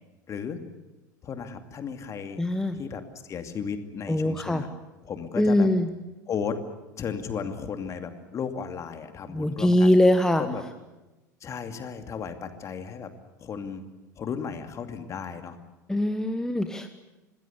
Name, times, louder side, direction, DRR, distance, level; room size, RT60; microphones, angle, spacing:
voice 1, 0.3-0.6 1.2-2.4 2.7-4.7 5.0-5.7 6.3-6.6 7.0-10.0 10.4-10.6 11.4-13.1 13.4-13.8 14.2-15.6, left 6 dB, 30° left, 7 dB, 2.6 m, -34 dB
voice 2, 2.4-2.8 4.1-4.6 5.4-5.9 9.3-10.4 15.9-16.9, left 1 dB, 5° left, 8 dB, 1.3 m, -22 dB
26.5 x 20.0 x 8.3 m, 1.0 s
figure-of-eight pair, 75°, 10 cm